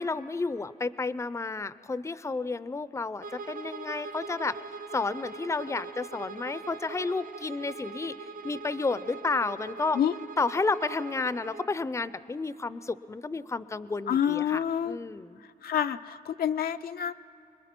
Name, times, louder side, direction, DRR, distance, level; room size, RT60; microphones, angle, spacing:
voice 1, 0.0-4.6 4.9-8.1 8.4-10.0 10.4-15.4, left 3 dB, 20° left, 15 dB, 0.5 m, -31 dB
Bowed string instrument, 3.2-11.7, right 4 dB, 65° right, 0.8 m, -42 dB
voice 2, 14.1-15.0 15.6-17.1, left 9 dB, 80° left, 9 dB, 0.5 m, -27 dB
26.5 x 20.5 x 6.0 m, 2.8 s
cardioid pair, 95°, 15 cm